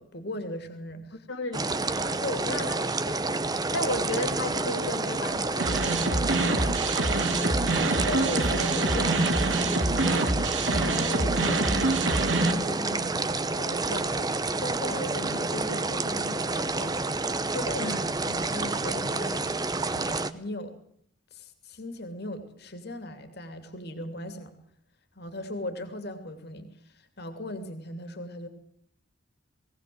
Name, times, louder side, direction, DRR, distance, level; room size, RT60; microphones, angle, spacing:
voice 1, 0.0-1.2 2.2-2.6 8.0-11.9 12.3-16.9 17.5-19.6 19.9-20.7 21.3-24.5 25.2-26.7 26.9-28.5, left 1 dB, 55° left, 8 dB, 2.8 m, -37 dB
voice 2, 1.3-2.8 3.1-3.3 3.7-6.8 17.8-18.0, left 2 dB, 90° left, 2 dB, 2.6 m, -35 dB
sound 1, 1.5-20.3, right 3 dB, 20° right, 0.9 m, -29 dB
sound 2, 5.6-12.5, right 2 dB, 75° right, 2.2 m, -26 dB
19.5 x 18.0 x 7.9 m, 0.66 s
head